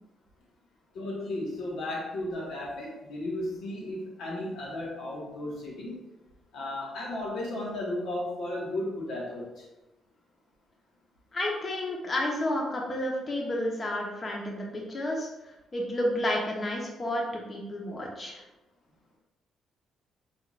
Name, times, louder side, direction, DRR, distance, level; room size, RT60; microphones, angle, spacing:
voice 1, 0.9-6.0 6.5-9.7, left 1 dB, 75° left, -3 dB, 1.4 m, -34 dB
voice 2, 11.3-15.3 15.7-18.4, left 1 dB, 35° left, -1 dB, 1.0 m, -31 dB
4.5 x 3.7 x 2.5 m, 0.99 s
cardioid pair, 90°, 0 cm